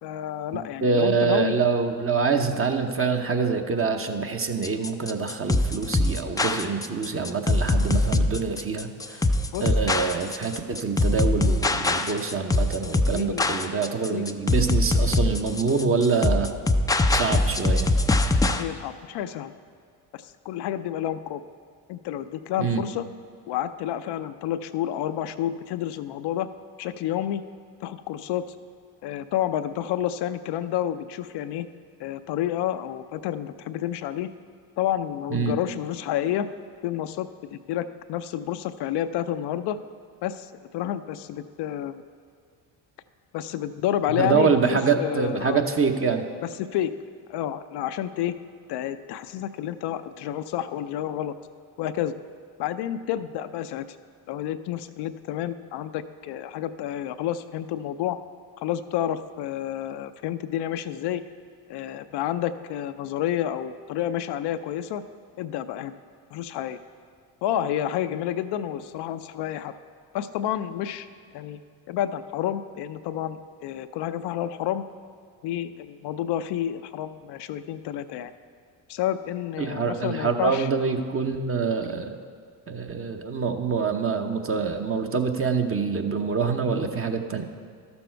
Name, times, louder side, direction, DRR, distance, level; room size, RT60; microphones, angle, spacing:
voice 1, 0.0-1.6 9.5-9.7 13.1-13.5 14.1-14.2 18.5-19.5 20.1-21.4 21.9-23.1 23.5-26.5 26.8-27.4 27.8-28.4 29.0-31.7 32.0-34.3 34.8-36.5 36.8-39.8 40.2-42.0 43.3-45.6 46.4-46.9 47.3-48.3 48.7-51.3 51.8-52.1 52.6-54.0 54.3-58.2 58.6-61.2 61.7-65.0 65.4-65.9 66.3-66.8 67.4-69.7 70.1-71.1 71.3-71.6 71.9-74.8 75.4-78.3 78.9-80.7, left 11 dB, 60° left, 10 dB, 0.5 m, -29 dB
voice 2, 0.8-9.3 9.6-16.5 17.1-17.9 22.6-22.8 35.3-35.5 44.2-46.2 79.6-82.2 82.7-87.4, right 5 dB, 30° right, 5 dB, 0.9 m, -25 dB
sound 1, 4.6-18.6, left 2 dB, 10° left, 0.4 m, -22 dB
12.0 x 7.0 x 4.5 m, 2.1 s
hypercardioid pair, 65°, 46 cm